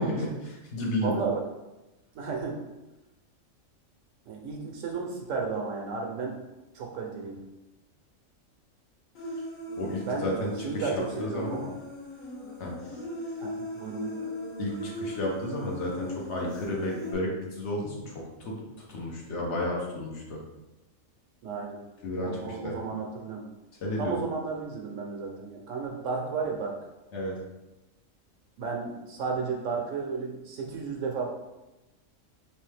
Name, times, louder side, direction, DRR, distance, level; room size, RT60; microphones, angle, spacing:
voice 1, 0.0-1.2 9.8-10.9 11.2-11.6 12.6-12.7 14.6-18.6 18.9-20.4 22.0-22.8 23.8-24.2 27.1-27.4, left 1 dB, 60° left, -2 dB, 1.0 m, -32 dB
voice 2, 1.0-1.4 2.1-2.6 4.3-6.4 6.7-7.4 10.1-10.4 10.6-11.7 13.4-14.1 21.4-21.8 22.2-23.5 24.0-26.8 28.6-31.3, right 4 dB, 75° right, 1 dB, 1.0 m, -33 dB
Human voice, 9.1-17.1, left 1 dB, 80° left, 1.4 m, -38 dB
3.3 x 3.1 x 3.2 m, 1.0 s
omnidirectional pair, 1.4 m